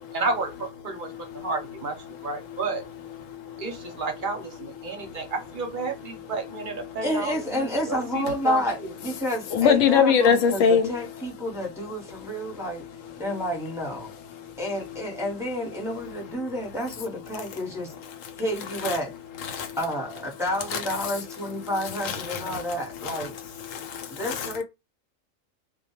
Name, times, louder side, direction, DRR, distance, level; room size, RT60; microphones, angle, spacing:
voice 1, 0.1-1.1 1.3-2.0 2.2-2.8 3.6-8.9, right 3 dB, 50° right, 0.7 m, -31 dB
voice 2, 1.0-1.5 3.3-3.6 4.8-5.2 9.5-10.9 14.4-14.5 18.3-18.4 18.8-19.0 19.4-19.8 20.7-20.8 22.0-22.6 23.0-23.3 23.6-24.5, left 7 dB, 80° left, 1.0 m, -24 dB
voice 3, 7.0-12.8 13.2-14.1 14.6-17.9 18.4-19.1 19.8-23.4 24.1-24.6, equal, 5° right, 0.7 m, -30 dB
2.2 x 2.2 x 2.9 m
omnidirectional pair, 1.3 m